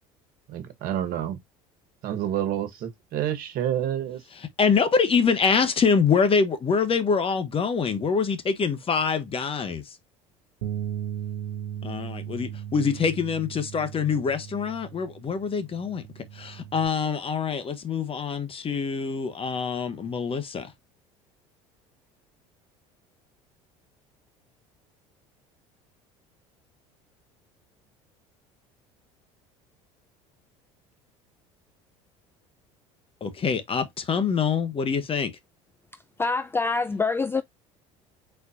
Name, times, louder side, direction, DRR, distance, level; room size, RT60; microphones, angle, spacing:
voice 1, 0.5-1.4 2.0-4.2, right 10 dB, 60° right, 1.4 m, -28 dB
voice 2, 4.6-10.0 11.8-16.0 16.3-20.7 33.2-35.3, left 5 dB, 35° left, 1.2 m, -25 dB
Bass guitar, 10.6-16.9, right 10 dB, 85° right, 0.8 m, -37 dB
voice 3, 36.2-37.4, left 4 dB, 15° left, 0.4 m, -25 dB
4.4 x 4.1 x 2.6 m
hypercardioid pair, 80°, 17 cm